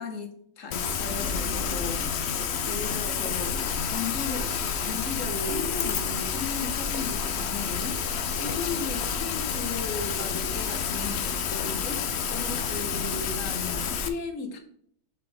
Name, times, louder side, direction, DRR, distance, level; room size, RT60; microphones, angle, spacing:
voice 1, 0.0-3.5 3.8-4.5 4.8-14.6, left 4 dB, 50° left, 6 dB, 1.4 m, -36 dB
Rain, 0.7-14.1, left 6 dB, 80° left, 0.5 m, -29 dB
7.1 x 5.7 x 3.5 m, 0.65 s
omnidirectional pair, 2.0 m